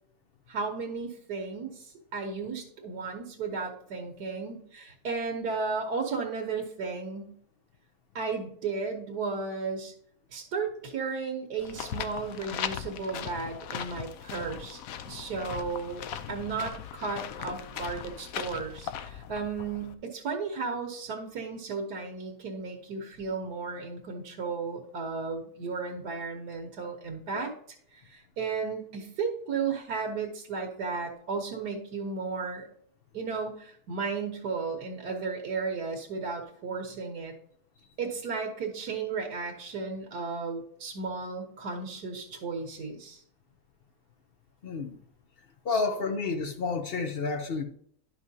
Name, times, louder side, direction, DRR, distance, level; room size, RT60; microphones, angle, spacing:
voice 1, 0.5-7.3 8.1-9.9 10.3-27.5 27.9-32.7 33.1-37.3 38.0-43.2 45.7-45.8, right 4 dB, 85° right, 1.6 m, -34 dB
sound 1, 11.6-19.9, left 9 dB, 70° left, 1.0 m, -39 dB
voice 2, 44.6-45.0 45.6-47.6, left 4 dB, 45° left, 0.8 m, -30 dB
11.0 x 5.6 x 2.7 m
omnidirectional pair, 1.7 m